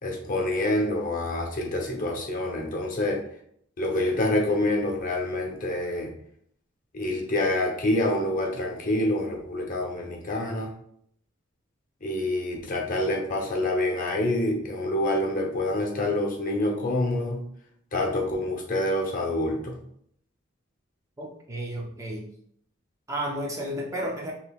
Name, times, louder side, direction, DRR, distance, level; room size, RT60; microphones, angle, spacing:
voice 1, 0.0-3.2 3.8-6.1 6.9-10.7 12.0-17.4 17.9-19.8, left 1 dB, 40° left, 1 dB, 0.9 m, -27 dB
voice 2, 21.2-22.3 23.1-24.3, right 1 dB, 15° right, 0 dB, 0.5 m, -32 dB
5.3 x 3.0 x 2.4 m, 0.67 s
head